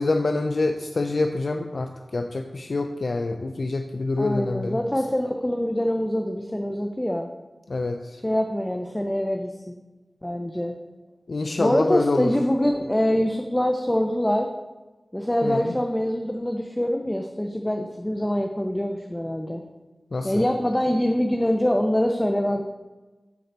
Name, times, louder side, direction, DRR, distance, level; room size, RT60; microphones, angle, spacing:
voice 1, 0.0-4.8 7.7-8.2 11.3-12.3 15.4-15.7 20.1-20.4, left 2 dB, 65° left, 5 dB, 0.5 m, -26 dB
voice 2, 4.2-7.3 8.2-9.8 10.2-10.7 11.6-14.5 15.1-19.6 20.2-22.6, equal, 15° left, 3 dB, 0.7 m, -24 dB
8.6 x 3.9 x 6.7 m, 1.2 s
cardioid pair, 45°, 0 cm